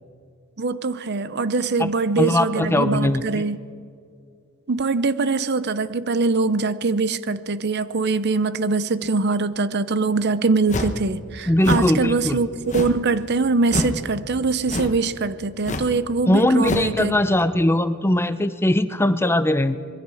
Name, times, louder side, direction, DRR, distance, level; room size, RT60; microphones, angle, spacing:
voice 1, 0.6-3.6 4.7-12.5 12.7-17.1, right 3 dB, 50° right, 0.7 m, -23 dB
voice 2, 2.2-3.5 11.5-12.4 16.3-19.8, left 1 dB, 10° left, 0.6 m, -20 dB
sound 1, 10.7-11.0 11.6-11.9 12.7-13.1 13.7-14.0 14.7-15.0 15.6-16.0 16.6-16.9, left 2 dB, 35° left, 1.2 m, -26 dB
26.0 x 21.5 x 4.9 m
head